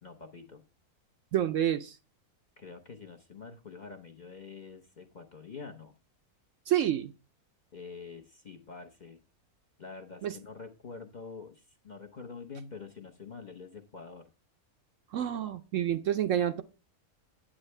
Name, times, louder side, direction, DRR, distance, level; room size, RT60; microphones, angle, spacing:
voice 1, 0.0-0.6 2.6-6.0 7.7-9.2 9.8-14.3, left 4 dB, 40° left, 0.8 m, -46 dB
voice 2, 1.3-2.0 6.7-7.1 10.2-10.4 15.1-16.6, right 11 dB, 65° right, 0.9 m, -28 dB
9.8 x 8.4 x 3.2 m
omnidirectional pair, 1.6 m